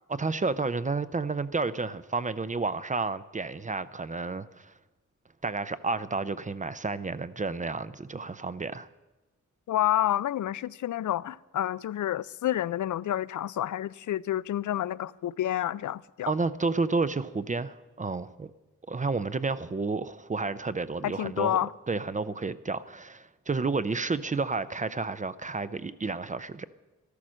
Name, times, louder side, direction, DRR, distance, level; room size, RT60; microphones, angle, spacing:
voice 1, 0.2-4.7 5.4-8.9 16.3-18.5 18.9-21.6 21.9-26.7, right 3 dB, 25° right, 0.5 m, -31 dB
voice 2, 9.7-16.3 21.0-21.7, left 12 dB, 70° left, 0.4 m, -29 dB
13.5 x 13.0 x 6.3 m
wide cardioid pair, 125°, 31 cm